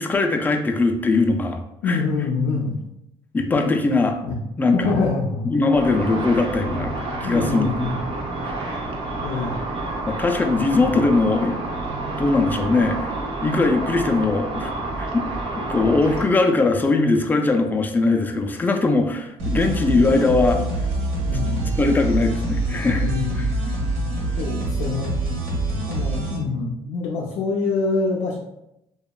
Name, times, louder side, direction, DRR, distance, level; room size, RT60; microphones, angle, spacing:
voice 1, 0.0-2.0 3.3-4.2 4.6-4.9 5.4-6.9 7.2-7.7 8.4-8.6 10.1-11.5 12.2-13.1 13.4-14.7 15.0-20.6 21.8-23.1 23.4-23.5 25.7-25.8, left 3 dB, 15° left, 4 dB, 0.3 m, -20 dB
voice 2, 1.8-2.7 4.2-4.4 4.7-5.5 7.2-8.0 9.2-9.6 21.3-21.8 23.0-23.5 24.4-25.1 25.9-28.4, left 4 dB, 80° left, -2 dB, 0.4 m, -25 dB
Car / Traffic noise roadway noise / Engine, 5.7-16.2, right 2 dB, 50° right, 0.5 m, -29 dB
sound 1, 19.4-26.4, right 2 dB, 80° right, 1.0 m, -25 dB
2.9 x 2.1 x 2.2 m, 0.85 s
cardioid pair, 90°, 12 cm